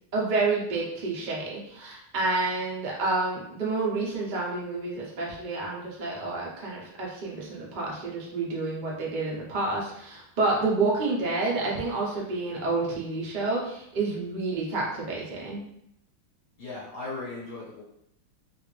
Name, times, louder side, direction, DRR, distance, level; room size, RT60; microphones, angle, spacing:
voice 1, 0.1-15.6, right 3 dB, 85° right, -4 dB, 0.4 m, -29 dB
voice 2, 16.6-17.8, left 3 dB, 55° left, -8 dB, 1.8 m, -37 dB
3.3 x 2.5 x 3.2 m, 0.77 s
omnidirectional pair, 2.3 m